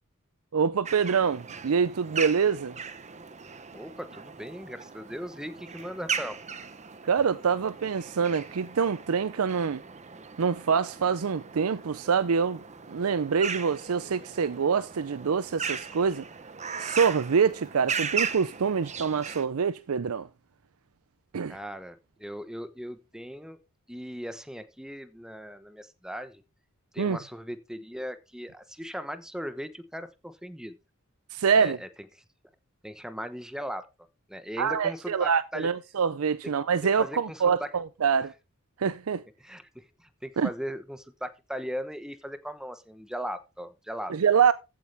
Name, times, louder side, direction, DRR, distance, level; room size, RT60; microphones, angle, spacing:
voice 1, 0.5-2.8 7.0-9.8 10.4-12.6 12.9-16.2 16.8-20.3 21.3-21.6 27.0-27.2 31.3-31.8 34.6-38.3 38.8-39.2 40.4-40.5 44.1-44.5, right 6 dB, 80° right, 0.5 m, -25 dB
sound 1, 0.9-19.5, right 6 dB, 35° right, 1.0 m, -38 dB
voice 2, 3.7-6.4 21.5-23.6 23.9-26.4 26.9-30.8 31.5-31.9 32.2-32.3 32.8-33.9 34.3-35.7 36.4-36.5 37.0-37.7 39.4-44.2, equal, 5° right, 1.1 m, -38 dB
14.5 x 8.4 x 3.4 m
head